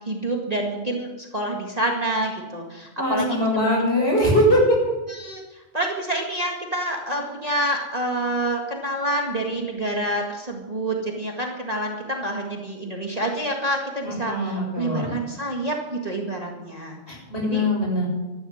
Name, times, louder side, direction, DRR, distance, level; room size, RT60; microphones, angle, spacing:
voice 1, 0.1-3.7 4.0-4.1 5.1-17.0 17.4-17.6, right 1 dB, 30° right, 0 dB, 2.0 m, -27 dB
voice 2, 3.0-4.6 14.0-15.2 17.1-18.1, equal, 50° left, -3 dB, 7.6 m, -22 dB
13.5 x 12.0 x 7.9 m, 1.1 s
omnidirectional pair, 1.4 m